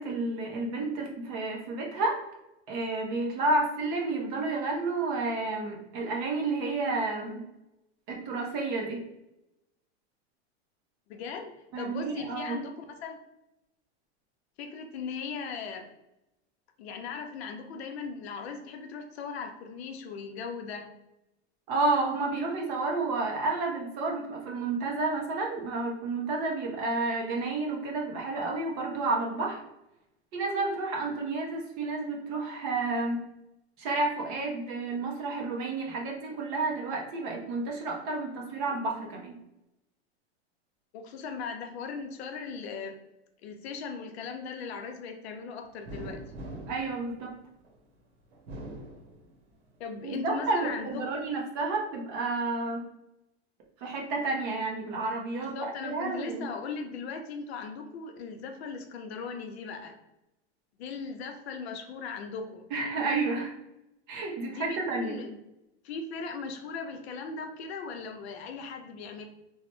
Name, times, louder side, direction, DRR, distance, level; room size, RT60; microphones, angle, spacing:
voice 1, 0.0-2.2 2.7-7.4 8.1-9.0 11.7-12.6 21.7-29.6 30.3-33.2 33.8-39.3 46.7-47.3 50.0-52.9 53.8-56.5 62.7-63.5 64.1-65.2, right 3 dB, 30° right, 0 dB, 0.4 m, -30 dB
voice 2, 11.1-13.2 14.6-15.9 16.8-20.9 40.9-43.0 43.4-46.2 49.8-51.1 55.4-60.0 60.8-62.6 64.4-65.4 65.8-69.2, left 5 dB, 65° left, 6 dB, 0.6 m, -38 dB
sound 1, 45.9-47.8 48.3-49.7 50.1-51.0, right 1 dB, 70° right, 1.0 m, -43 dB
3.0 x 2.0 x 3.0 m, 0.90 s
supercardioid pair, 155°, 34 cm